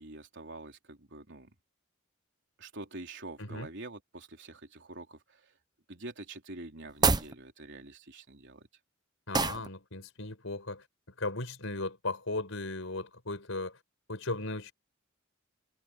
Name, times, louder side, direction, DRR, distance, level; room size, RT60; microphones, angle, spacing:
voice 1, 0.0-1.5 2.6-5.5 5.9-8.7, right 2 dB, 60° right, 3.9 m, -46 dB
sound 1, 6.9-7.3 9.3-9.7, right 4 dB, 20° right, 0.9 m, -26 dB
voice 2, 9.3-10.8 11.2-13.8 14.1-14.7, left 2 dB, 70° left, 5.4 m, -36 dB
head